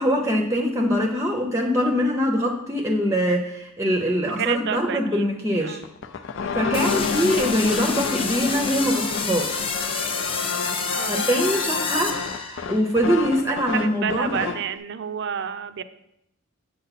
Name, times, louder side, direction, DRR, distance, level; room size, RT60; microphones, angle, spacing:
voice 1, 0.0-5.8 6.5-9.6 11.1-14.5, equal, 15° right, 3 dB, 0.6 m, -23 dB
voice 2, 4.2-5.3 5.6-5.8 6.6-6.9 10.9-11.3 13.7-15.8, right 7 dB, 60° right, 11 dB, 0.5 m, -30 dB
sound 1, 5.8-14.7, left 5 dB, 65° left, 0.5 m, -30 dB
sound 2, 6.7-12.9, left 4 dB, 25° left, 0.7 m, -29 dB
7.5 x 6.8 x 4.1 m, 0.80 s
head